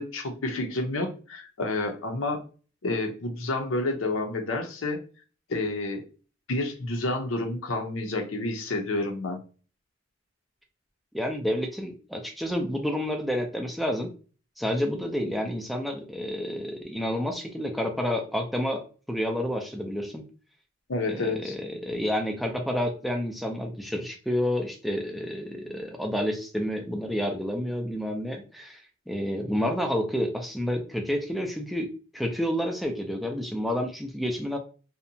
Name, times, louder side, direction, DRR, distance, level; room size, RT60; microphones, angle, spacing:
voice 1, 0.0-2.4 2.8-5.0 5.5-6.0 6.5-9.4 20.9-21.6, left 2 dB, 75° left, 5 dB, 0.6 m, -29 dB
voice 2, 11.1-14.1 14.6-18.8 19.1-20.2 21.1-28.8 29.1-34.6, equal, ahead, 3 dB, 0.3 m, -29 dB
2.7 x 2.1 x 2.6 m, 0.37 s
head